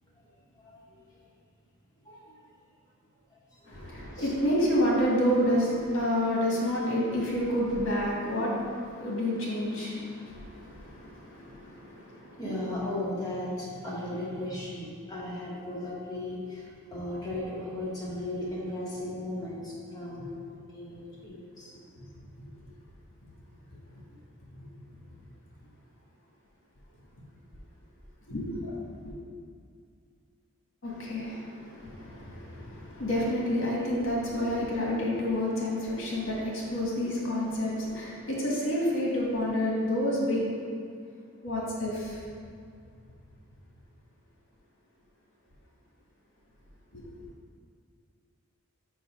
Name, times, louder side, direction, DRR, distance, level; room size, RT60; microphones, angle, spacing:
voice 1, 0.2-1.2 2.0-2.4 3.3-3.8 4.1-4.3 9.9-10.0 10.9-11.0 12.2-21.8 23.9-24.0, left 1 dB, 15° left, -6 dB, 1.1 m, -37 dB
voice 2, 3.6-12.8 14.0-14.1 20.2-20.3 28.3-28.7 29.0-29.1 30.8-40.5 41.4-42.2 46.9-47.3, left 1 dB, 60° left, -4 dB, 1.6 m, -29 dB
5.4 x 5.1 x 4.9 m, 2.3 s
head